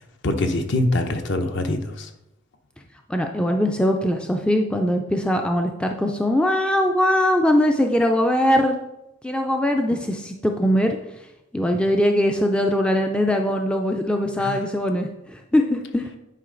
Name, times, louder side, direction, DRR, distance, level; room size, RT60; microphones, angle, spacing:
voice 1, 0.2-2.1 14.4-14.6, left 1 dB, 55° left, 6 dB, 0.8 m, -24 dB
voice 2, 3.1-8.8 9.2-11.0 11.5-15.1 15.5-16.1, left 1 dB, 5° left, 3 dB, 0.4 m, -21 dB
9.8 x 4.8 x 3.8 m, 0.90 s
head